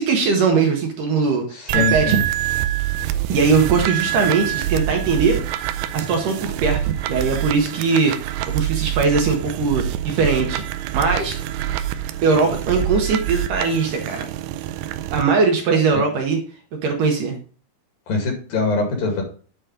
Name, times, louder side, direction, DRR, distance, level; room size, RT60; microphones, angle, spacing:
voice 1, 0.0-1.4 1.7-2.2 3.3-8.1 8.5-10.6 10.9-11.4 12.2-14.3 15.1-16.4 16.8-17.3, right 4 dB, 65° right, 2 dB, 2.5 m, -20 dB
voice 2, 1.5-2.2 18.1-19.2, left 4 dB, 60° left, 3 dB, 3.5 m, -23 dB
sound 1, 1.7-15.2, right 12 dB, 80° right, 2.1 m, -26 dB
9.2 x 4.3 x 4.9 m, 0.39 s
omnidirectional pair, 4.6 m